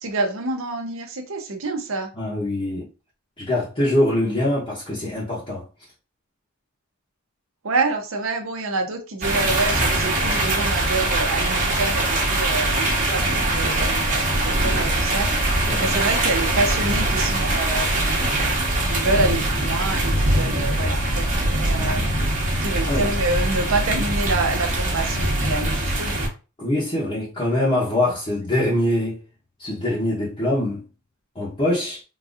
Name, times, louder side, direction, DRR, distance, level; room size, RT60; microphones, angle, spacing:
voice 1, 0.0-2.1 7.6-15.3 15.5-18.5 18.9-22.1 22.6-26.3, right 3 dB, 65° right, 0.8 m, -27 dB
voice 2, 2.2-2.9 3.4-5.6 15.7-16.0 22.9-23.1 26.6-29.2 29.6-30.8 31.3-32.0, left 1 dB, 25° left, 0.9 m, -23 dB
sound 1, 9.2-26.3, right 1 dB, 35° right, 1.1 m, -22 dB
3.8 x 2.7 x 2.5 m
head